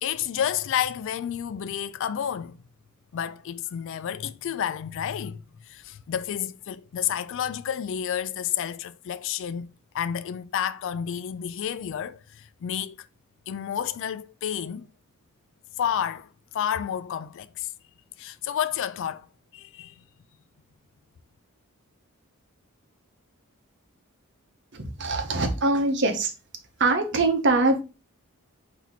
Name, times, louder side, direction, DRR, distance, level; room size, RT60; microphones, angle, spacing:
voice 1, 0.0-2.6 3.1-13.1 13.5-14.9 15.8-17.7 18.2-19.3 19.5-20.0, left 9 dB, 55° left, 0.3 m, -30 dB
voice 2, 24.7-26.3 26.8-27.8, right 2 dB, 50° right, 0.9 m, -23 dB
4.5 x 2.9 x 4.0 m
head